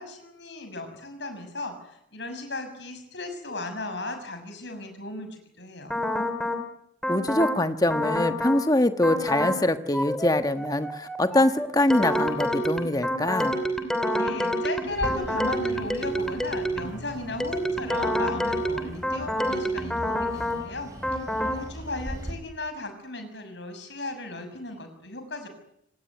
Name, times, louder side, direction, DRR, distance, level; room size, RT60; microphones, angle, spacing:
voice 1, 0.0-6.0 14.1-25.5, left 2 dB, 65° left, 7 dB, 6.5 m, -36 dB
sound 1, 5.9-6.6 7.0-7.6 7.9-8.6 9.0-9.6 9.9-17.0 17.4-20.6 21.0-21.6, equal, 5° left, 2.9 m, -28 dB
voice 2, 7.1-13.5, left 1 dB, 20° left, 9 dB, 1.3 m, -24 dB
Bird, 14.9-22.3, equal, 15° right, 7.4 m, -40 dB
26.5 x 18.5 x 9.7 m, 0.78 s
head